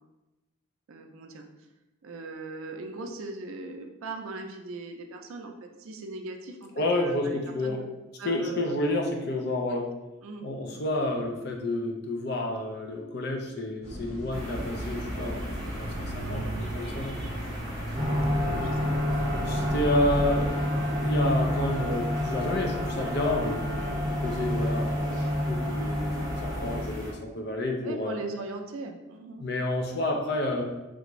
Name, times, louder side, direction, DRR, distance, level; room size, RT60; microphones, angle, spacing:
voice 1, 0.9-1.4 2.0-7.8 8.2-8.8 9.5-9.6 10.2-10.5 16.2-16.6 18.3-19.0 23.7-24.1 27.8-29.5, right 3 dB, 75° right, 4 dB, 0.4 m, -39 dB
voice 2, 6.8-7.8 8.2-9.8 10.4-15.9 16.1-17.2 19.4-23.7 24.2-28.2 29.4-30.6, left 1 dB, 50° left, 2 dB, 0.5 m, -30 dB
sound 1, 13.8-20.5, right 1 dB, 75° left, 1.5 m, -37 dB
sound 2, 14.3-27.1, equal, ahead, 1.1 m, -37 dB
sound 3, 17.9-26.8, left 1 dB, 20° right, 0.6 m, -29 dB
3.4 x 2.5 x 3.0 m, 1.0 s
head